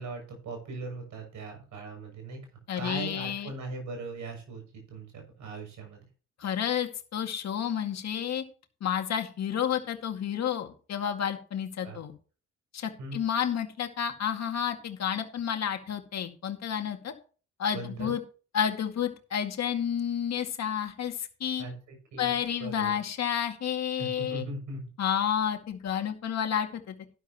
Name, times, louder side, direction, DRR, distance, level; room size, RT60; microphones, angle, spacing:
voice 1, 0.0-2.4 2.7-6.1 11.8-12.0 13.0-13.2 17.7-18.1 21.6-23.0 24.0-24.9, right 2 dB, 75° right, 3 dB, 6.8 m, -39 dB
voice 2, 2.7-3.5 6.4-8.4 8.8-12.1 12.7-17.1 17.6-18.2 18.5-21.6 22.2-24.4 25.0-26.9, left 9 dB, 60° left, 5 dB, 2.1 m, -30 dB
12.0 x 11.0 x 3.0 m, 0.38 s
cardioid pair, 90°, 30 cm